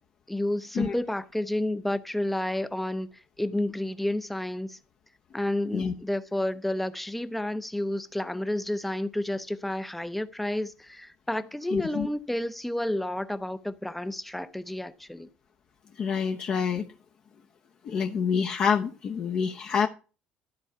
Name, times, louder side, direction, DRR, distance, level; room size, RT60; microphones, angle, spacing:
voice 1, 0.3-3.1 3.4-4.8 5.3-15.3, left 1 dB, 5° left, 0.7 m, -30 dB
voice 2, 11.7-12.1 16.0-16.8 17.8-19.9, left 6 dB, 40° left, 0.9 m, -27 dB
13.0 x 4.7 x 6.6 m
cardioid pair, 150°, 3 cm